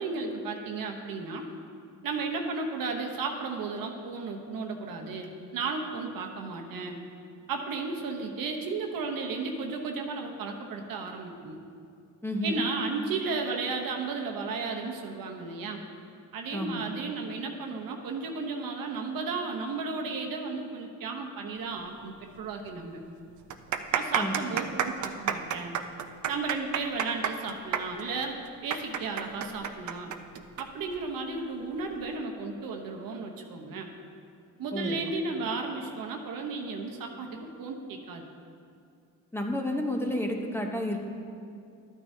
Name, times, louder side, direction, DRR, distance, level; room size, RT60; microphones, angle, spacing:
voice 1, 0.0-1.5 2.0-7.0 7.5-11.6 12.4-15.8 16.3-23.0 23.9-25.8 26.3-30.1 30.6-33.9 34.6-37.3 37.6-38.2, right 4 dB, 85° right, 2 dB, 1.0 m, -34 dB
voice 2, 12.2-12.6 16.5-16.8 24.2-24.3 34.7-35.0 39.3-41.0, left 1 dB, 5° left, 2 dB, 0.9 m, -30 dB
sound 1, 22.3-22.4 22.7-22.8 23.4-30.6 30.9-31.0 31.8-32.1, right 8 dB, 60° right, 0.6 m, -30 dB
12.5 x 9.1 x 2.8 m, 2.4 s
cardioid pair, 95°, 33 cm